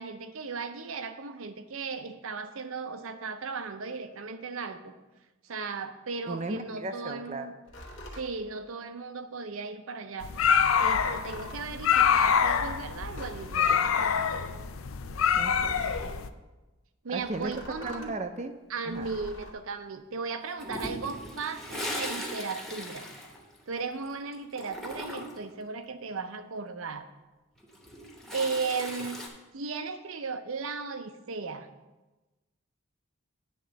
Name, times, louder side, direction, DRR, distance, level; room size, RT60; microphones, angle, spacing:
voice 1, 0.0-4.9 5.4-7.5 8.2-10.3 10.7-14.5 17.0-18.1 18.7-23.1 23.7-27.1 28.3-29.2 29.5-31.7, right 4 dB, 75° right, 9 dB, 0.6 m, -36 dB
voice 2, 6.3-7.5 15.3-15.7 17.1-17.5 17.8-18.6 18.8-19.2, right 2 dB, 30° right, 8 dB, 0.5 m, -36 dB
sound 1, 7.7-8.3 10.6-11.7 12.8-13.8 15.5-16.3 17.2-18.2 18.9-19.5, equal, 60° left, 1.2 m, -44 dB
sound 2, 10.2-16.3, left 7 dB, 75° left, 0.4 m, -26 dB
Toilet flush, 20.6-24.1 24.3-25.5 27.6-29.3, equal, ahead, 0.9 m, -38 dB
9.3 x 3.7 x 6.8 m, 1.1 s
head